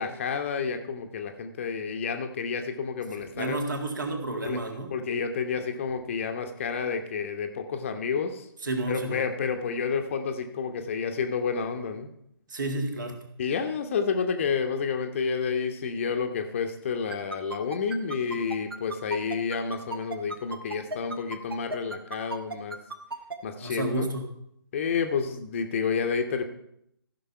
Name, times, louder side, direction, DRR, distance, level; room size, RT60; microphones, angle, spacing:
voice 1, 0.0-3.6 4.5-4.6 4.9-8.5 8.9-12.1 13.4-22.8 23.4-24.1 24.7-26.4, left 5 dB, 30° left, 6 dB, 0.9 m, -30 dB
voice 2, 3.2-4.9 8.6-9.2 12.5-13.2 23.6-24.3, right 2 dB, 50° right, 5 dB, 1.9 m, -31 dB
sound 1, 17.1-23.4, right 3 dB, 70° right, 1.4 m, -35 dB
14.5 x 5.6 x 5.7 m, 0.75 s
figure-of-eight pair, 140°, 13 cm